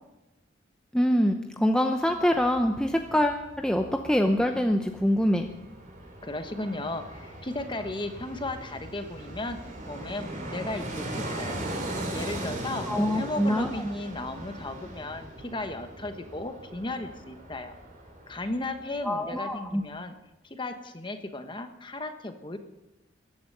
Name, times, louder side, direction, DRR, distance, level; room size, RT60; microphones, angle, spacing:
voice 1, 0.9-5.5 12.9-13.7 19.0-19.8, equal, 5° left, 4 dB, 0.7 m, -25 dB
Fixed-wing aircraft airplane, 2.1-19.0 19.3-19.4, right 1 dB, 45° right, 3.2 m, -39 dB
voice 2, 6.2-11.6 12.1-12.9 13.1-17.7 18.3-20.1 20.4-22.6, left 2 dB, 25° left, 8 dB, 1.2 m, -35 dB
15.0 x 11.0 x 6.8 m, 0.99 s
head